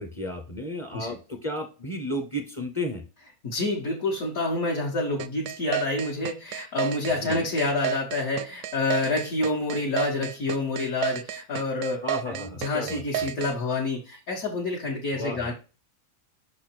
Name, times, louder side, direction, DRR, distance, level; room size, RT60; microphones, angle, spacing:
voice 1, 0.0-3.0 7.2-7.5 12.0-13.0 15.1-15.5, left 1 dB, 25° left, 5 dB, 0.7 m, -33 dB
voice 2, 3.4-15.5, left 2 dB, 65° left, -4 dB, 1.8 m, -28 dB
sound 1, 5.2-13.5, right 11 dB, 85° right, 1.1 m, -31 dB
5.9 x 4.3 x 4.4 m, 0.32 s
omnidirectional pair, 1.6 m